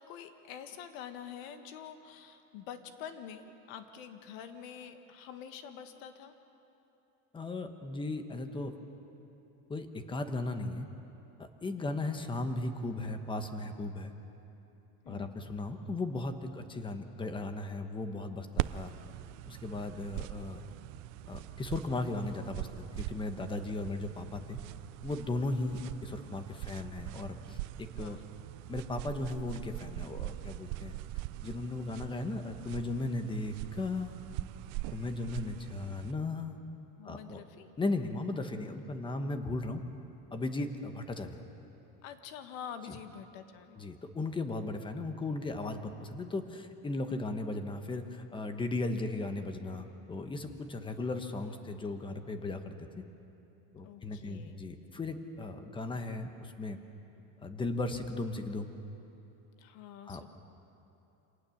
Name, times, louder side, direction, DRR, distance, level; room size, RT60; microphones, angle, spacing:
voice 1, 0.0-6.3 11.8-12.0 15.0-15.4 28.0-28.2 37.0-37.7 42.0-43.9 53.8-54.6 59.6-60.3, left 8 dB, 85° left, 8 dB, 1.7 m, -46 dB
voice 2, 7.3-8.8 9.7-10.9 11.4-14.1 15.1-18.9 19.5-20.7 21.3-24.6 25.0-28.2 28.7-31.0 31.4-34.1 34.9-36.6 37.0-37.4 37.8-39.8 40.3-41.4 43.8-52.7 53.7-56.8 57.4-58.7 60.0-60.3, left 2 dB, 15° left, 7 dB, 1.1 m, -36 dB
sound 1, 18.6-36.1, right 17 dB, 80° right, 0.6 m, -42 dB
26.5 x 18.5 x 7.1 m, 3.0 s
cardioid pair, 160°, 39 cm